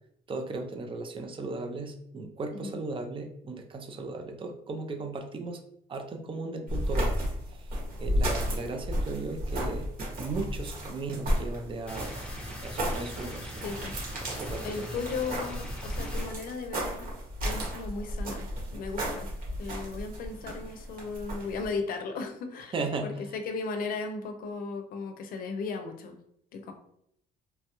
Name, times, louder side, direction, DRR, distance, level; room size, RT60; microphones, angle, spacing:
voice 1, 0.3-5.6 5.9-7.1 7.5-7.7 8.0-9.9 10.2-12.1 12.6-13.6 14.2-15.0 22.7-23.1, right 3 dB, 30° right, 4 dB, 0.5 m, -36 dB
sound 1, 6.7-21.7, equal, 55° right, 1.4 m, -33 dB
sound 2, 11.9-16.3, equal, 5° left, 0.7 m, -41 dB
voice 2, 13.6-13.9 14.6-17.1 17.4-19.3 19.6-22.8 23.0-26.2 26.5-26.7, left 4 dB, 60° left, 6 dB, 0.5 m, -36 dB
3.0 x 2.3 x 2.9 m, 0.72 s
cardioid pair, 110°, 17 cm